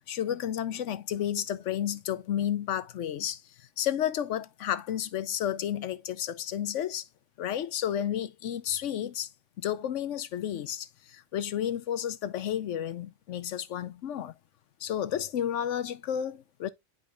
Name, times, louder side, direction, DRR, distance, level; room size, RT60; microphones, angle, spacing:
voice 1, 0.1-3.4 3.8-7.1 7.4-9.3 9.6-14.3 14.8-16.7, left 10 dB, 75° left, 1.0 m, -31 dB
10.0 x 5.0 x 2.3 m
omnidirectional pair, 1.3 m